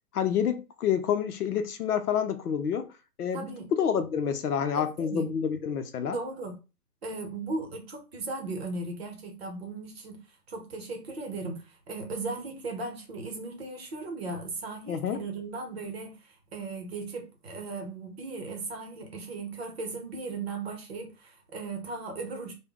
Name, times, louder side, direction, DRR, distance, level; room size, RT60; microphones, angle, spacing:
voice 1, 0.1-2.9 3.2-6.2 14.9-15.2, left 8 dB, 70° left, 0.7 m, -28 dB
voice 2, 3.3-3.7 4.7-5.3 6.1-6.6 7.0-10.2 10.5-22.5, right 3 dB, 40° right, 0.8 m, -37 dB
3.6 x 2.2 x 3.4 m
hypercardioid pair, 165°, 48 cm